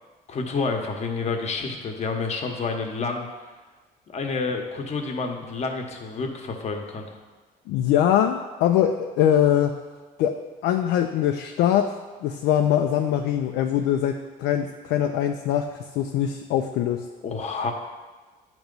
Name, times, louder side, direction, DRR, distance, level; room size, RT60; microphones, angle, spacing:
voice 1, 0.3-3.3 4.1-7.1 17.2-17.7, left 4 dB, 40° left, 3 dB, 0.9 m, -29 dB
voice 2, 7.7-9.8 10.2-11.9 12.2-17.1, left 10 dB, 85° left, 4 dB, 0.4 m, -22 dB
9.0 x 3.0 x 5.3 m, 1.3 s
cardioid pair, 110°, 17 cm